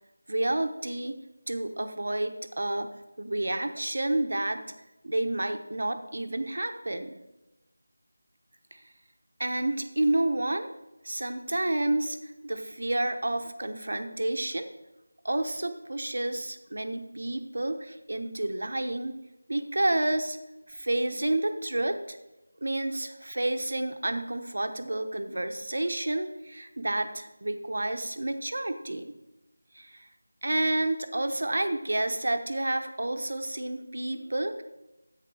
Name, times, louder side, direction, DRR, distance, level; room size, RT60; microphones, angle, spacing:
voice 1, 0.3-1.2 1.5-2.9 3.2-4.6 5.0-7.1 8.7-8.8 9.4-10.7 11.0-14.7 15.2-19.1 19.5-20.4 20.7-22.2 22.6-29.0 29.7-30.1 30.4-34.6, right 1 dB, 55° right, 7 dB, 1.0 m, -30 dB
10.0 x 8.3 x 4.9 m, 1.0 s
figure-of-eight pair, 180°, 0 cm